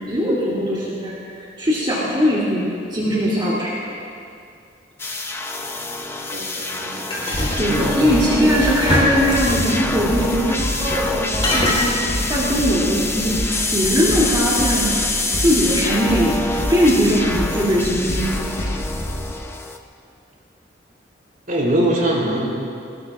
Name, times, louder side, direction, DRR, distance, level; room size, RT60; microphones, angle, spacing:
voice 1, 0.1-3.9 7.5-16.3 16.7-18.4, equal, 25° right, -8 dB, 3.0 m, -20 dB
sound 1, 5.0-19.8, left 2 dB, 15° left, 0.8 m, -26 dB
voice 2, 6.3-7.1 7.7-8.1 21.5-22.5, right 1 dB, 50° right, -3 dB, 3.7 m, -22 dB
sound 2, 7.1-8.4 8.9-9.9 10.8-11.1 11.4-11.9, left 1 dB, 30° left, 4.3 m, -24 dB
sound 3, 7.3-19.3, left 1 dB, 55° left, 1.6 m, -28 dB
24.5 x 20.0 x 2.6 m, 2.4 s
head